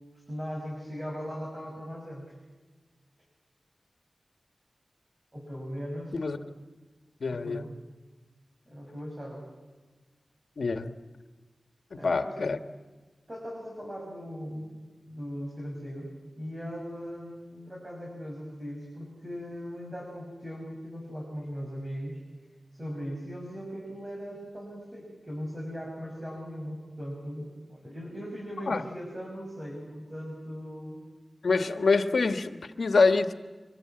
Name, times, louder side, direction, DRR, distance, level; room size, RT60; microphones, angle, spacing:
voice 1, 0.3-2.3 5.3-6.5 7.3-7.7 8.7-9.4 11.9-12.4 13.3-14.8 15.1-22.2 22.7-31.1, equal, 25° right, -2 dB, 6.5 m, -39 dB
voice 2, 7.2-7.6 10.6-10.9 11.9-12.6 28.7-28.8 31.4-33.3, left 4 dB, 85° left, 9 dB, 1.4 m, -25 dB
25.0 x 23.0 x 8.7 m, 1.3 s
wide cardioid pair, 90°, 0 cm